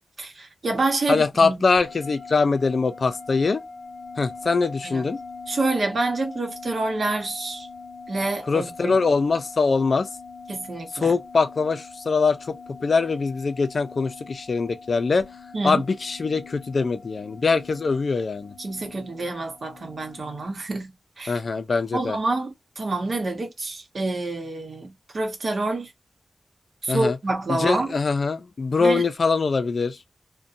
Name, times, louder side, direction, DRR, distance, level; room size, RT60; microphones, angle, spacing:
voice 1, 0.2-1.7 4.8-5.1 5.5-7.7 8.1-9.0 10.5-11.1 15.5-15.8 18.6-21.3 21.9-25.9 26.8-27.9 28.8-29.0, right 2 dB, 60° right, 0.9 m, -27 dB
voice 2, 1.1-3.6 4.2-5.2 8.5-10.1 11.0-15.3 15.6-18.5 21.3-22.2 26.9-27.2 27.5-30.0, left 4 dB, 55° left, 0.4 m, -23 dB
sound 1, 1.8-20.5, left 3 dB, 15° left, 0.9 m, -42 dB
2.6 x 2.2 x 2.5 m
wide cardioid pair, 135°, 0 cm